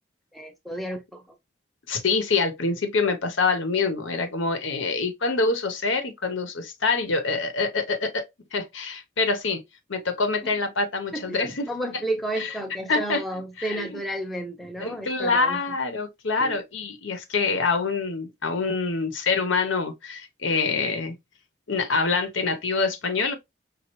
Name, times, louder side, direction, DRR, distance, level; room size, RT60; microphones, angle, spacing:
voice 1, 0.3-1.2 11.1-15.6 16.4-16.6, right 1 dB, ahead, 0.5 m, -32 dB
voice 2, 1.9-8.2 8.5-9.6 9.9-11.7 12.4-12.5 12.9-13.2 13.6-14.0 14.8-21.2 21.7-23.4, left 4 dB, 80° left, 0.9 m, -25 dB
5.4 x 2.4 x 3.0 m
head